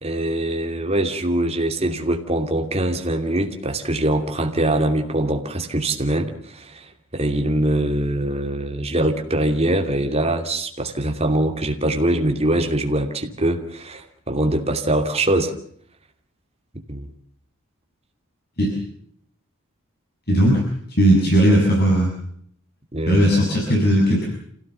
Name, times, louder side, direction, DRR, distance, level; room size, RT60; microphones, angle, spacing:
voice 1, 0.0-15.5 16.9-17.1 22.9-23.2, right 1 dB, 30° right, 4 dB, 2.8 m, -23 dB
voice 2, 20.3-20.6 20.9-22.1 23.1-24.3, right 1 dB, 45° left, 0 dB, 6.7 m, -17 dB
27.5 x 17.0 x 7.1 m, 0.66 s
head